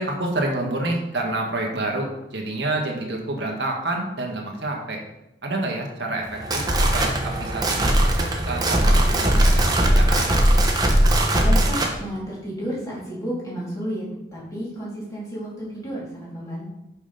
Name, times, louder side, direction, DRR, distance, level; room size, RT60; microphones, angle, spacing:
voice 1, 0.0-5.0 5.4-6.7 6.9-10.4, right 2 dB, 85° right, 1 dB, 1.5 m, -28 dB
sound 1, 6.3-11.9, right 1 dB, 20° right, 0.9 m, -19 dB
voice 2, 11.3-14.0 14.3-16.7, equal, 20° left, -7 dB, 3.0 m, -31 dB
6.1 x 5.8 x 5.1 m, 0.90 s
head